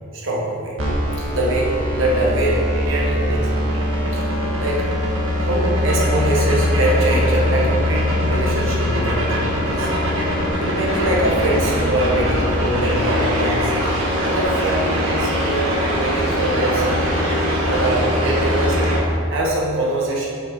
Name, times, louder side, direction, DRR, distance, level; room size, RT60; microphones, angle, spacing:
voice 1, 0.1-0.7 1.3-3.4 3.7-3.9 4.1-4.2 4.6-4.9 5.4-9.9 10.6-13.7 14.2-17.0 17.6-19.0 19.3-20.2, right 1 dB, 65° right, -4 dB, 1.0 m, -23 dB
sound 1, 0.8-19.0, equal, 90° right, 1.6 m, -21 dB
5.9 x 5.2 x 4.6 m, 2.4 s
head